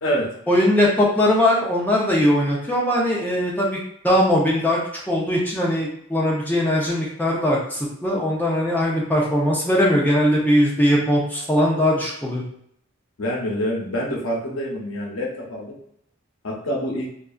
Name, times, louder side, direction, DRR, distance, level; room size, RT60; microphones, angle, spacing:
voice 1, 0.5-3.8 4.0-4.8 5.1-12.4, left 1 dB, 10° left, -4 dB, 0.5 m, -20 dB
voice 2, 13.2-15.7 16.4-17.1, equal, 80° left, -2 dB, 0.7 m, -26 dB
2.6 x 2.3 x 2.4 m, 0.70 s
head